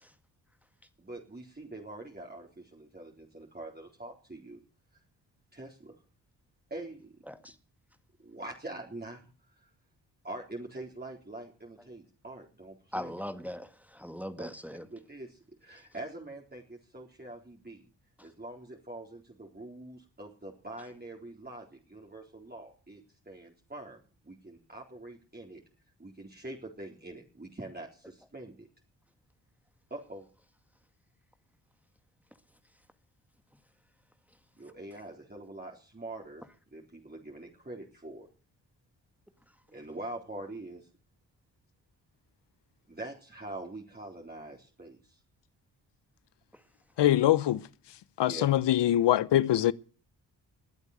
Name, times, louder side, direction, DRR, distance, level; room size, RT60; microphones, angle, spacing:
voice 1, 1.0-4.6 5.5-6.0 6.7-7.2 8.2-9.7 10.2-13.2 14.4-14.5 14.9-17.9 18.2-25.6 26.0-28.7 29.9-30.3 34.6-36.4 36.7-38.3 39.7-40.9 42.9-45.2 48.2-48.5, right 2 dB, 20° right, 4.0 m, -44 dB
voice 2, 12.9-13.7 14.0-14.8, equal, 5° right, 1.8 m, -39 dB
voice 3, 47.0-47.6 48.2-49.7, left 13 dB, 75° left, 0.9 m, -23 dB
20.5 x 8.2 x 6.7 m
supercardioid pair, 45°, 43 cm